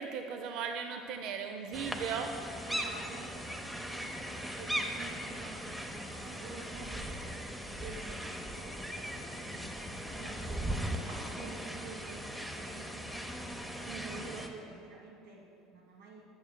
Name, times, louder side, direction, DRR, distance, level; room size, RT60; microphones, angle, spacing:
voice 1, 0.0-2.3 6.2-6.4 13.9-14.3, right 6 dB, 65° right, 5 dB, 0.3 m, -38 dB
sound 1, 1.7-14.5, equal, 5° right, 0.5 m, -39 dB
voice 2, 2.7-13.3 14.2-16.2, right 3 dB, 80° right, -3 dB, 1.5 m, -49 dB
8.6 x 7.1 x 2.2 m, 2.5 s
hypercardioid pair, 80°, 0 cm